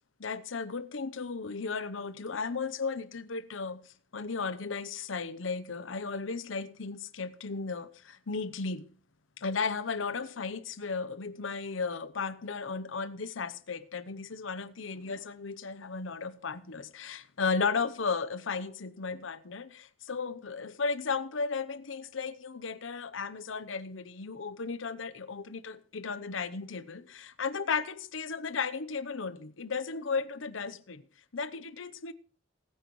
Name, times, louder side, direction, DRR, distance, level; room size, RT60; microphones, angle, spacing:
voice 1, 0.2-3.8 4.1-8.9 9.4-31.0 31.3-32.1, left 4 dB, 75° left, 0.8 m, -35 dB
20.0 x 9.2 x 3.1 m
head